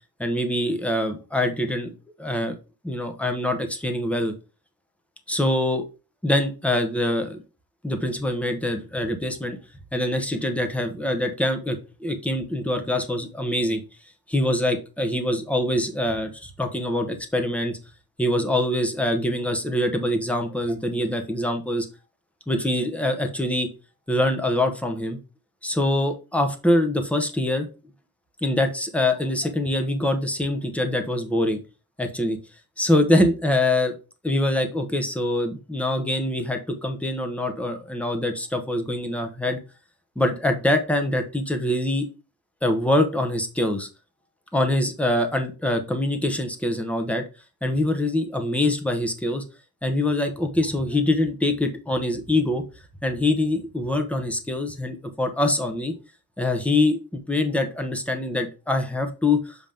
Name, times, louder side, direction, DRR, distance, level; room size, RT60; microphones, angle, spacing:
voice 1, 0.2-1.9 2.2-2.5 2.8-4.3 5.3-5.8 6.2-7.4 7.8-9.6 9.9-13.8 14.3-17.8 18.2-21.9 22.5-23.7 24.1-25.2 25.6-27.7 28.4-31.6 32.0-32.4 32.8-34.0 34.2-39.6 40.2-42.1 42.6-43.9 44.5-47.2 47.6-49.4 49.8-52.6 53.0-55.9 56.4-59.6, left 1 dB, 5° left, 5 dB, 1.0 m, -24 dB
7.5 x 3.0 x 5.1 m, 0.32 s
wide cardioid pair, 155°, 37 cm